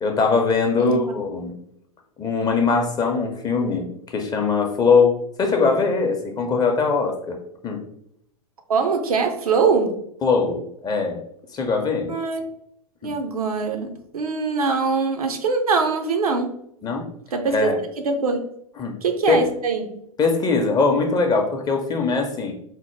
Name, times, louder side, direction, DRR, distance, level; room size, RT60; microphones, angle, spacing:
voice 1, 0.0-1.5 2.2-7.4 7.6-7.8 10.2-11.2 11.5-12.1 13.0-13.1 16.8-17.1 17.5-17.8 18.8-19.0 19.3-19.5 20.2-22.5, left 4 dB, 20° left, 3 dB, 0.6 m, -21 dB
voice 2, 8.7-10.0 12.1-12.4 13.0-16.5 17.3-17.7 18.0-18.4 19.0-19.9, right 4 dB, 80° right, 5 dB, 0.6 m, -22 dB
4.1 x 2.0 x 3.1 m, 0.72 s
figure-of-eight pair, 95°, 19 cm